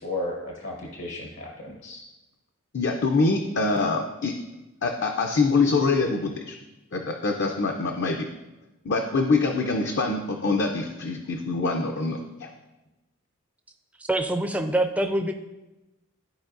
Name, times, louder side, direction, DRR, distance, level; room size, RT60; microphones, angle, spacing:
voice 1, 0.0-2.0, left 2 dB, 65° left, 0 dB, 1.0 m, -34 dB
voice 2, 2.7-4.3 4.8-6.6 6.9-8.3 8.8-12.5, left 3 dB, 50° left, 4 dB, 0.5 m, -24 dB
voice 3, 14.0-15.3, right 1 dB, 5° right, 6 dB, 0.4 m, -25 dB
13.0 x 4.6 x 2.5 m, 1.0 s
head